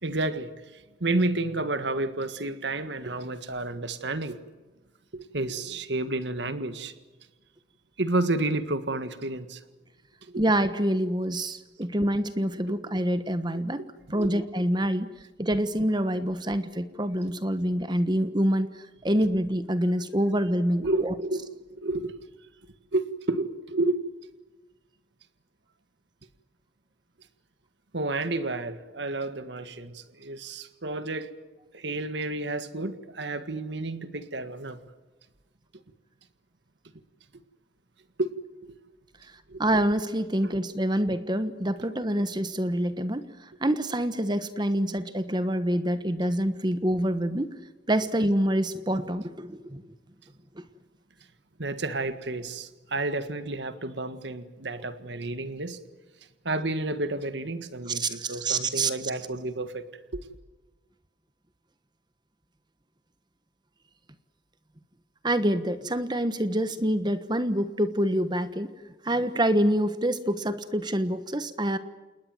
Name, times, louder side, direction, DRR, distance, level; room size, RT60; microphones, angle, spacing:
voice 1, 0.0-4.4 5.1-6.9 8.0-9.6 10.2-10.4 12.7-12.8 13.5-13.6 14.1-14.4 20.8-21.4 21.8-22.1 22.9-24.0 27.9-31.3 31.7-34.8 38.2-38.3 38.6-38.7 39.5-39.6 40.4-40.5 51.6-55.8 56.5-59.8 60.1-60.2, right 2 dB, 75° right, 1.7 m, -30 dB
voice 2, 10.4-13.8 14.1-15.1 15.4-21.1 39.6-47.5 47.9-49.8 50.6-50.7 57.9-58.9 65.2-68.7 69.0-71.8, right 1 dB, 25° right, 1.2 m, -26 dB
28.5 x 20.5 x 7.8 m
head